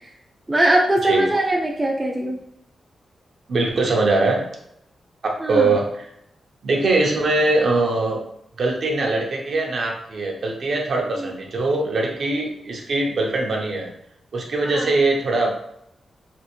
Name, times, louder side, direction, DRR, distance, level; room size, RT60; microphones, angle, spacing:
voice 1, 0.5-2.4 5.4-5.7 14.7-14.9, right 1 dB, 20° right, -1 dB, 0.4 m, -20 dB
voice 2, 3.5-4.4 5.2-6.1 6.6-8.2 8.6-13.9 14.3-15.5, right 2 dB, 55° right, 0 dB, 0.6 m, -22 dB
3.4 x 2.5 x 2.9 m, 0.75 s
wide cardioid pair, 130°, 0 cm